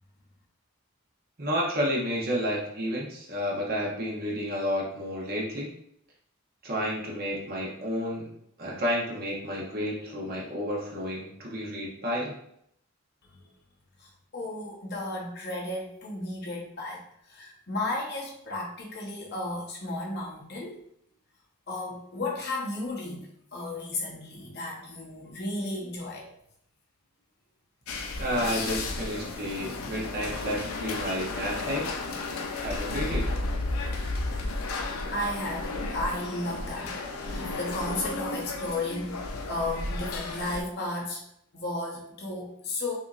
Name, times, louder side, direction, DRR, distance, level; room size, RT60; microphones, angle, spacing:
voice 1, 1.4-5.7 6.6-8.3 8.6-12.3 28.2-31.9 32.6-33.3, equal, 40° right, -3 dB, 1.0 m, -31 dB
voice 2, 14.0-20.8 21.7-26.3 35.1-41.2 41.5-43.0, left 2 dB, 45° left, -2 dB, 1.0 m, -34 dB
sound 1, 27.9-40.6, left 2 dB, 80° left, 0.6 m, -33 dB
5.9 x 2.8 x 2.5 m, 0.71 s
head